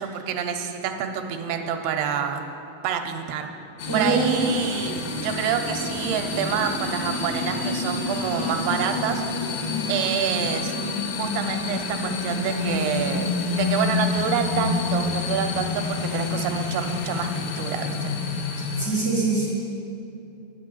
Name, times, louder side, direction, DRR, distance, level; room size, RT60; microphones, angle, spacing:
voice 1, 0.0-2.4 2.8-3.5 3.9-9.2 9.9-10.7 11.2-18.1, right 8 dB, 80° right, 5 dB, 2.6 m, -27 dB
sound 1, 3.8-18.9, left 3 dB, 70° left, 2.5 m, -28 dB
voice 2, 3.9-4.5 18.8-19.5, right 3 dB, 20° left, -7 dB, 0.6 m, -23 dB
9.8 x 6.3 x 7.7 m, 2.7 s
omnidirectional pair, 4.5 m